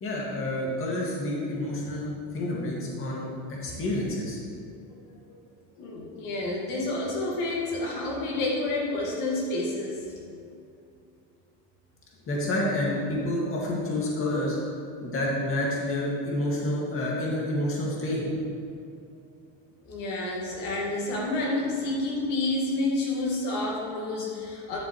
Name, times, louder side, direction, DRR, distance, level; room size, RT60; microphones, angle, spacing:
voice 1, 0.0-4.4 12.3-14.6 15.0-18.2, left 1 dB, 40° left, -4 dB, 2.1 m, -29 dB
voice 2, 5.8-10.0 19.9-24.8, left 2 dB, 75° left, -3 dB, 2.0 m, -29 dB
11.0 x 7.6 x 3.1 m, 2.5 s
cardioid pair, 120°, 34 cm